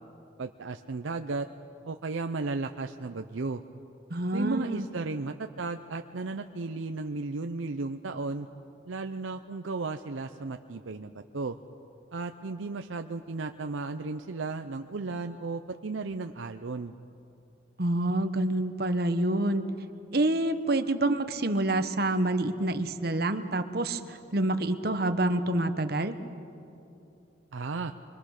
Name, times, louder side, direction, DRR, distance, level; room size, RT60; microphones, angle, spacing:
voice 1, 0.4-1.5 1.9-3.6 4.3-8.5 8.9-11.6 12.1-16.9 27.5-27.9, right 3 dB, 85° right, 6 dB, 0.6 m, -34 dB
voice 2, 4.1-4.9 17.8-19.7 20.1-26.2, right 1 dB, 55° right, 9 dB, 1.1 m, -27 dB
26.0 x 24.0 x 6.6 m, 2.8 s
head